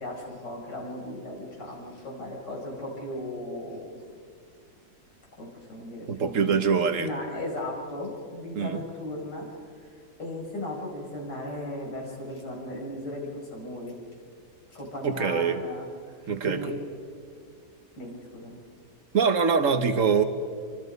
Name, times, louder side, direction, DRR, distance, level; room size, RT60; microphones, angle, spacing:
voice 1, 0.0-3.9 5.4-6.7 7.0-9.5 10.2-13.9 14.7-16.7 18.0-18.6, left 1 dB, 90° left, -2 dB, 5.9 m, -36 dB
voice 2, 6.1-7.1 8.5-8.8 15.0-15.6 16.3-16.7 19.1-20.2, right 6 dB, 50° right, 9 dB, 1.5 m, -24 dB
26.5 x 25.0 x 5.4 m, 2.2 s
omnidirectional pair, 1.8 m